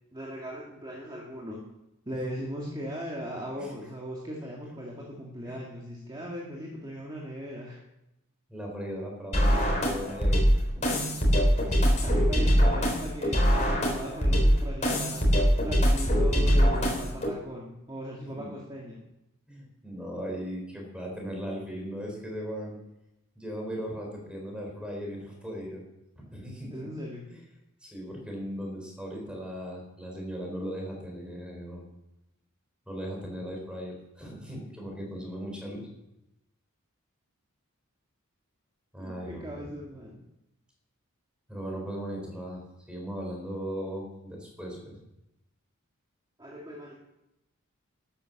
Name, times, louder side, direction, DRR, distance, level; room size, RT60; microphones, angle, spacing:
voice 1, 0.1-1.6 2.1-7.8 12.0-15.2 15.6-19.0 26.7-27.2 39.0-40.2 46.4-46.9, equal, 20° right, -3 dB, 2.0 m, -38 dB
voice 2, 8.5-10.4 10.7-11.1 11.4-12.3 18.3-18.5 19.5-22.8 23.3-25.8 26.2-26.7 27.3-27.4 27.8-31.8 32.9-35.9 38.9-39.7 41.5-44.9, equal, 5° right, 0 dB, 4.3 m, -38 dB
sound 1, 9.3-17.3, equal, 35° left, 3.7 m, -23 dB
12.5 x 10.0 x 7.2 m, 0.89 s
head